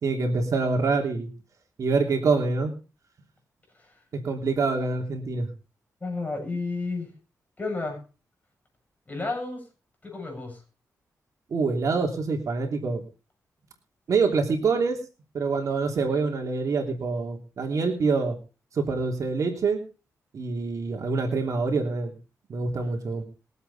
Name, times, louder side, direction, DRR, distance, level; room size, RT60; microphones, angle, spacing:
voice 1, 0.0-1.3 1.8-2.7 4.2-5.5 11.5-13.0 14.1-15.0 15.3-18.4 18.7-19.8 20.3-22.1 22.5-23.2, right 4 dB, 65° right, 3 dB, 3.0 m, -25 dB
voice 2, 6.0-7.1 7.6-8.0 9.1-9.6 10.0-10.6, left 3 dB, 25° left, 3 dB, 7.2 m, -31 dB
22.0 x 8.1 x 4.2 m, 0.33 s
cardioid pair, 105°, 6 cm